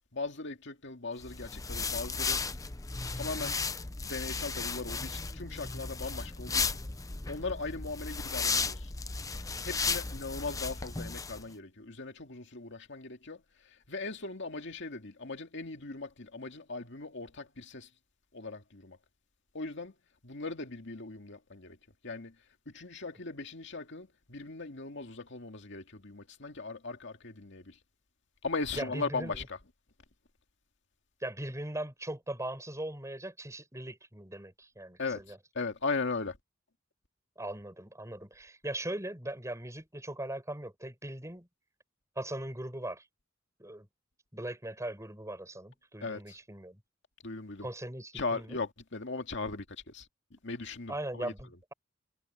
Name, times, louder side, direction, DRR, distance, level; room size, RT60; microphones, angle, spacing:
voice 1, 0.1-2.4 3.1-3.6 4.0-6.8 7.3-8.9 9.6-13.4 13.9-17.9 18.3-19.0 19.5-19.9 20.2-21.8 22.0-22.3 22.7-27.8 28.4-29.6 35.0-36.4 46.0-46.4 47.2-47.7 48.1-51.3, left 3 dB, 65° left, 2.2 m, -38 dB
sound 1, 1.2-11.4, left 4 dB, 15° left, 0.7 m, -35 dB
voice 2, 28.7-29.4 31.2-35.4 37.4-41.5 42.2-43.1 43.6-43.9 44.3-46.8 47.6-48.6 50.9-51.7, right 1 dB, 15° right, 7.2 m, -39 dB
head